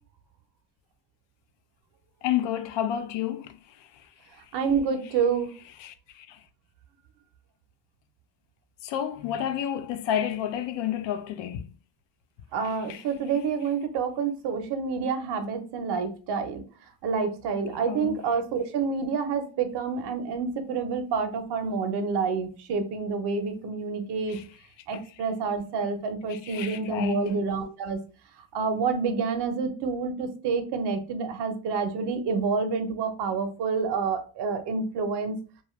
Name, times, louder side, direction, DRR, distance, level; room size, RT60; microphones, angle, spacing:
voice 1, 2.2-3.6 5.8-6.4 8.8-11.7 12.9-13.0 17.8-18.2 24.3-24.4 26.3-27.2, left 10 dB, 75° left, 0.5 m, -30 dB
voice 2, 4.5-5.5 12.5-16.6 17.0-24.4 24.9-28.0 28.5-35.3, right 5 dB, 65° right, 0.6 m, -28 dB
2.5 x 2.3 x 3.0 m
cardioid pair, 115°, 44 cm